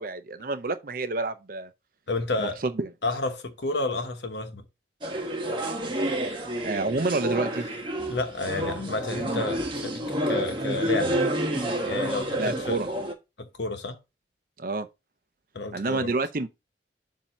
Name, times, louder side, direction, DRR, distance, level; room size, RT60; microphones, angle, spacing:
voice 1, 0.0-1.7 2.4-2.9 6.6-7.7 12.4-12.9 14.6-14.9 15.7-16.5, right 3 dB, 50° right, 0.6 m, -28 dB
voice 2, 2.1-2.6 3.0-4.6 8.1-11.2 11.8-12.8 13.4-14.0 15.5-16.1, left 2 dB, 70° left, 1.0 m, -31 dB
sound 1, 5.0-13.1, right 1 dB, 25° right, 1.1 m, -29 dB
7.3 x 2.8 x 5.7 m
head